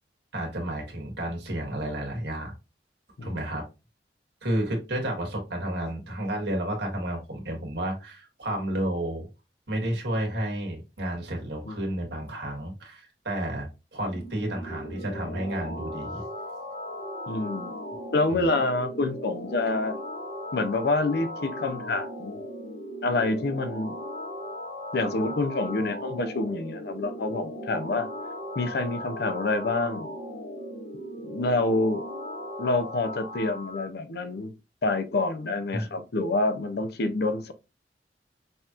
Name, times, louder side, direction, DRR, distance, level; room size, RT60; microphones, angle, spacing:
voice 1, 0.3-2.5 3.2-3.6 4.4-9.3 9.7-16.2 18.3-18.4 35.7-35.9, right 1 dB, 70° right, 1.5 m, -31 dB
sound 1, 14.0-33.9, left 1 dB, 85° left, 1.5 m, -37 dB
voice 2, 17.3-17.7 18.1-20.0 20.5-22.4 23.0-23.9 24.9-28.1 28.6-30.1 31.2-32.0 32.6-34.5 34.8-37.5, left 2 dB, 65° left, 0.6 m, -27 dB
5.5 x 2.9 x 2.4 m
head